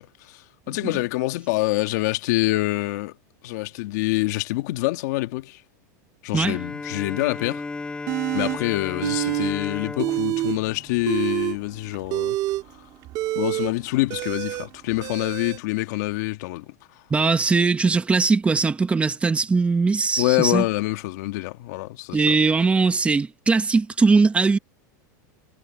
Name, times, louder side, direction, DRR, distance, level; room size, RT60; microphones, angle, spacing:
voice 1, 0.0-3.1 3.4-5.6 6.2-7.6 8.3-12.4 13.4-16.7 20.2-22.3, left 20 dB, 65° left, 1.9 m, -26 dB
Bowed string instrument, 6.4-11.9, left 3 dB, 10° left, 4.8 m, -35 dB
sound 1, 8.1-8.6 9.0-9.5 9.8-10.6 11.0-15.6, right 16 dB, 40° right, 2.3 m, -27 dB
voice 2, 17.1-20.6 22.1-24.6, right 4 dB, 10° right, 1.3 m, -20 dB
supercardioid pair, 140°, 10 cm